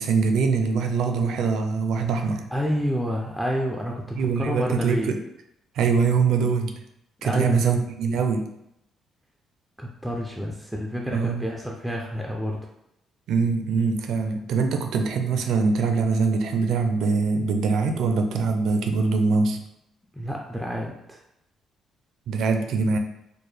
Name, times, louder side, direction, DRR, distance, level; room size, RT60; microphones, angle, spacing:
voice 1, 0.0-2.4 4.2-5.2 5.8-6.8 7.2-8.5 11.1-11.5 13.3-19.6 22.3-23.0, right 4 dB, 75° right, 6 dB, 0.4 m, -23 dB
voice 2, 2.5-5.1 7.2-7.7 9.8-12.6 20.1-21.2, equal, ahead, -1 dB, 0.3 m, -29 dB
4.5 x 2.1 x 3.2 m, 0.81 s
cardioid pair, 160°, 0 cm